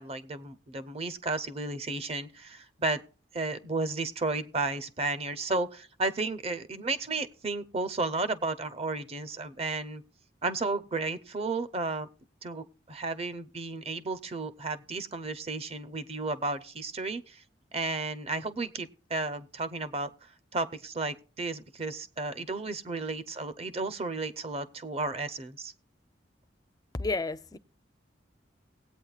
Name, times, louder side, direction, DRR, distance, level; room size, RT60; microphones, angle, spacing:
voice 1, 0.0-3.0 3.3-10.0 10.4-12.1 12.4-17.4 17.7-25.7, right 3 dB, 35° right, 0.6 m, -33 dB
voice 2, 27.0-27.6, left 3 dB, 20° left, 0.4 m, -31 dB
19.0 x 8.5 x 2.4 m
head